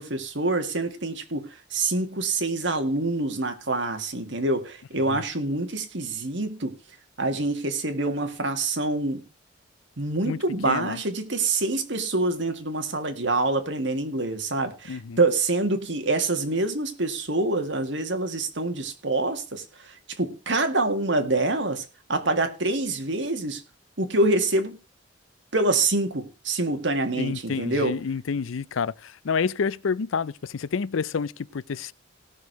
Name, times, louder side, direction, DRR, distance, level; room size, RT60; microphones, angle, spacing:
voice 1, 0.0-6.8 7.2-9.2 10.0-21.8 22.1-23.6 24.0-24.8 25.5-27.9, right 2 dB, 65° right, 1.9 m, -26 dB
voice 2, 10.6-11.0 14.9-15.2 27.2-31.9, left 5 dB, 85° left, 0.5 m, -29 dB
17.0 x 6.4 x 4.7 m
head